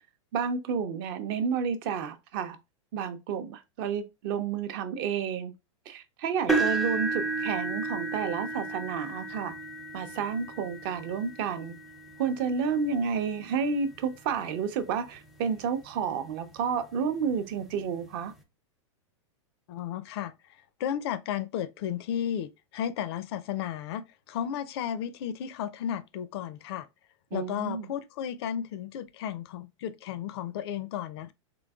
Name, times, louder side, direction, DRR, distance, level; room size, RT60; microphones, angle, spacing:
voice 1, 0.3-2.6 2.9-5.5 5.9-9.5 9.9-11.8 12.2-18.3 27.3-27.9, right 6 dB, 45° right, 0.6 m, -30 dB
sound 1, 6.5-14.5 15.1-15.4 15.8-15.9 17.3-17.4, right 3 dB, ahead, 0.5 m, -33 dB
voice 2, 19.7-20.3 20.8-26.9 27.3-31.3, left 9 dB, 55° left, 0.4 m, -33 dB
3.8 x 3.4 x 2.3 m
supercardioid pair, 145°, 16 cm